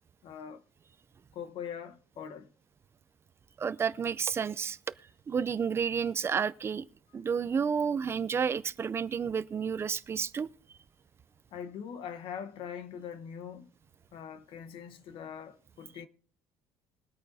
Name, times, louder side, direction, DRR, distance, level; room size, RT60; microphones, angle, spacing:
voice 1, 0.2-0.6 1.3-2.5 11.5-13.7 14.1-16.1, left 8 dB, 60° left, 1.1 m, -42 dB
voice 2, 3.6-4.8 5.3-6.9 7.1-10.5, right 6 dB, 25° right, 0.4 m, -30 dB
22.0 x 8.6 x 2.7 m
cardioid pair, 155°, 10 cm